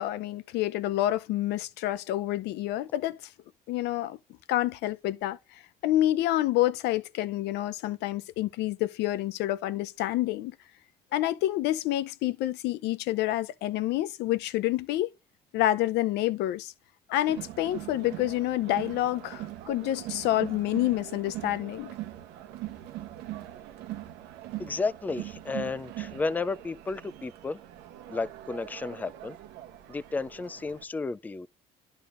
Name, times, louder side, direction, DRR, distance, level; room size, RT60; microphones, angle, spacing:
voice 1, 0.0-3.2 3.7-4.2 4.5-5.4 5.8-10.5 11.1-15.1 15.5-16.7 17.1-21.9, left 14 dB, 80° left, 0.6 m, -28 dB
Crowd, 17.3-30.8, right 14 dB, 90° right, 0.9 m, -41 dB
voice 2, 24.6-27.6 28.1-29.4 29.9-31.5, left 3 dB, 10° left, 0.3 m, -32 dB
11.0 x 5.4 x 2.5 m
cardioid pair, 110°, 17 cm